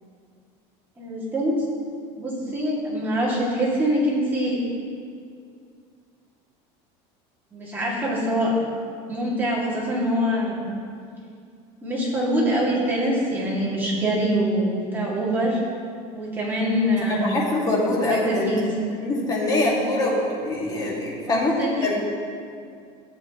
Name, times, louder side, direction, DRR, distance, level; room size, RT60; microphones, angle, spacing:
voice 1, 1.0-1.6 2.2-4.6 7.5-8.5 9.1-10.7 11.8-15.6 16.1-17.3 18.1-18.7 21.3-21.9, equal, 10° right, -6 dB, 2.1 m, -24 dB
voice 2, 17.1-18.6 19.0-22.0, left 1 dB, 25° left, -4 dB, 1.9 m, -24 dB
13.5 x 7.7 x 2.9 m, 2.3 s
cardioid pair, 155°, 16 cm